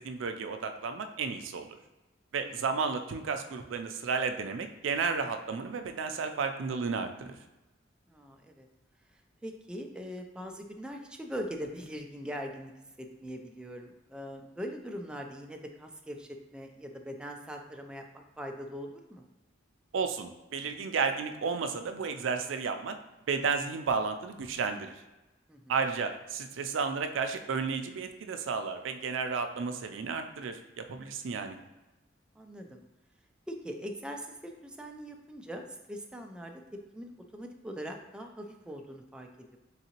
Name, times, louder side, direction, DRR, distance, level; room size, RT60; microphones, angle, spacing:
voice 1, 0.0-1.7 2.3-7.4 19.9-23.0 23.3-25.0 25.7-31.6, right 5 dB, 85° right, 6 dB, 0.4 m, -32 dB
voice 2, 8.1-8.7 9.4-12.7 13.0-19.2 25.5-25.7 32.4-32.8 33.5-39.6, equal, 5° right, 2 dB, 0.3 m, -42 dB
3.9 x 3.6 x 2.9 m, 1.1 s
head